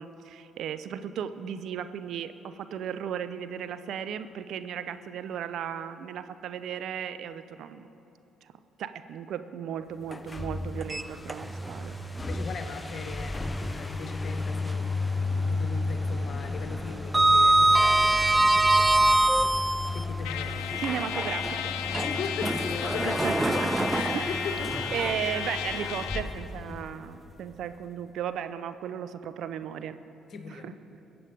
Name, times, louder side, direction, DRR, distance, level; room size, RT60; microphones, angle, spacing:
voice 1, 0.0-7.9 8.4-8.5 8.8-12.0 20.8-21.7 23.0-23.3 23.6-23.9 24.1-24.6 24.9-30.0 30.5-30.7, right 8 dB, 60° right, 12 dB, 0.6 m, -35 dB
sound 1, 10.0-27.5, left 3 dB, 25° left, 0.7 m, -34 dB
Sliding door, 10.8-11.8 12.2-12.3 14.0-15.0 15.3-15.7 15.9-20.0 20.7-25.9, right 2 dB, 15° right, 0.4 m, -25 dB
voice 2, 12.3-14.9 15.5-20.8 22.0-25.1 30.3-30.7, left 5 dB, 50° left, 7 dB, 1.3 m, -39 dB
Trumpet, 20.2-26.4, left 10 dB, 70° left, 0.5 m, -34 dB
21.0 x 8.7 x 5.0 m, 3.0 s
figure-of-eight pair, 45°, 0 cm